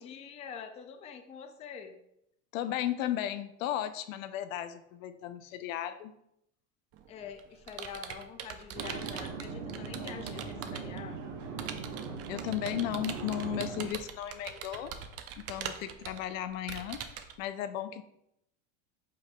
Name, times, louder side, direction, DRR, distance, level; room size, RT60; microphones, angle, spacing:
voice 1, 0.0-2.0 7.1-11.2, left 7 dB, 20° left, 7 dB, 0.3 m, -45 dB
voice 2, 2.5-6.1 12.3-14.9 15.4-17.0 17.4-18.0, left 11 dB, 85° left, 11 dB, 0.5 m, -35 dB
Computer keyboard, 6.9-11.0 11.6-17.3, right 8 dB, 40° right, 0.5 m, -42 dB
sound 1, 8.8-13.9, right 5 dB, 60° right, 0.9 m, -40 dB
5.1 x 4.1 x 2.2 m, 0.78 s
supercardioid pair, 110°, 39 cm